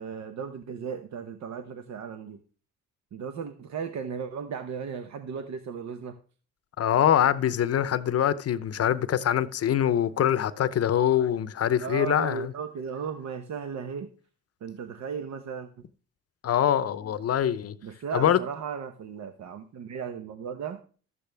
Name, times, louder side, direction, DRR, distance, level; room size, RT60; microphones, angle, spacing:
voice 1, 0.0-2.4 3.1-6.1 11.8-14.1 14.6-15.7 17.8-20.8, right 6 dB, 65° right, 0.9 m, -36 dB
voice 2, 6.8-12.5 16.4-17.7 18.1-18.4, left 10 dB, 55° left, 0.7 m, -24 dB
12.5 x 8.4 x 3.4 m
cardioid pair, 90°, 30 cm